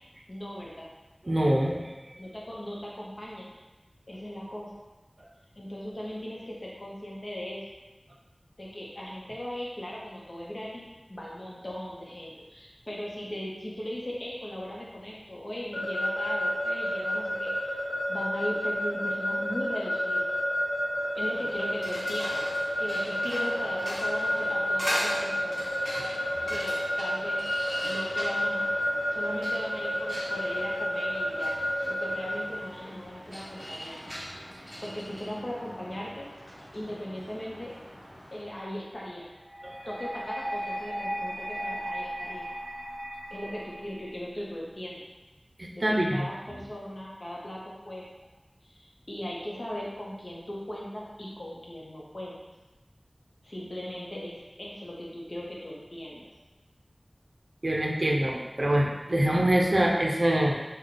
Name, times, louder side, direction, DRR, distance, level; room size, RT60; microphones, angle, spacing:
voice 1, 0.3-0.9 2.2-3.5 4.1-4.8 5.6-7.6 8.6-10.8 11.1-17.8 18.1-20.3 21.1-22.4 22.8-25.6 26.5-27.5 27.8-28.7 29.1-31.5 31.9-34.0 34.8-36.3 36.7-37.8 38.3-39.3 39.9-42.5 43.3-45.0 45.7-48.1 48.6-52.4 53.4-56.3, left 1 dB, 60° left, -4 dB, 0.8 m, -38 dB
voice 2, 1.3-1.8 26.0-26.5 39.6-39.7 45.8-46.3 57.6-60.5, right 1 dB, 55° right, 0 dB, 0.5 m, -25 dB
Keyboard (musical) / Alarm, 15.7-32.3, left 1 dB, 30° left, 1.0 m, -30 dB
sound 1, 21.1-38.6, equal, 10° right, 0.8 m, -40 dB
sound 2, 39.5-44.5, equal, 85° left, 1.1 m, -36 dB
3.4 x 2.2 x 3.8 m, 1.1 s
wide cardioid pair, 50°, 0 cm